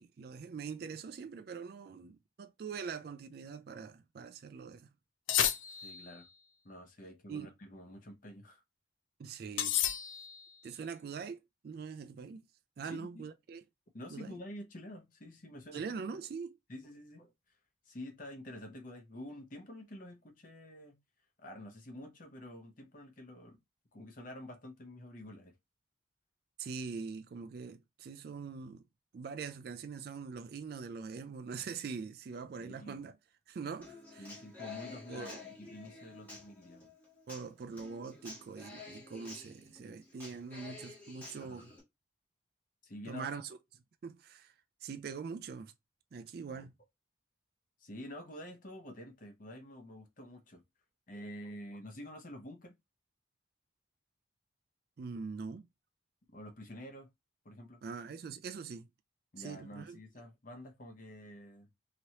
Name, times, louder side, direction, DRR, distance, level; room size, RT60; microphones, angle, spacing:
voice 1, 0.0-4.9 7.3-7.5 9.2-9.8 10.6-12.4 12.8-13.6 14.1-14.3 15.7-16.6 26.6-28.8 29.1-33.1 33.5-34.3 35.1-35.4 37.3-41.7 43.1-43.6 44.0-44.5 44.8-45.7 46.1-46.7 55.0-55.7 57.8-58.9 59.4-60.0, right 5 dB, 50° right, 0.3 m, -43 dB
sound 1, 5.3-6.2 9.6-10.5, left 10 dB, 75° left, 0.4 m, -32 dB
voice 2, 5.8-6.3 6.6-8.6 12.8-13.2 13.9-15.8 16.7-17.3 17.9-21.0 21.4-23.6 23.9-25.5 32.6-33.1 34.2-36.9 41.4-41.6 42.8-43.3 46.5-46.7 47.8-50.6 51.1-52.7 56.3-57.1 57.4-57.8 59.3-61.7, left 1 dB, 45° left, 0.8 m, -48 dB
Human voice / Acoustic guitar, 33.8-41.8, left 4 dB, 10° left, 1.3 m, -50 dB
3.0 x 2.9 x 2.8 m
head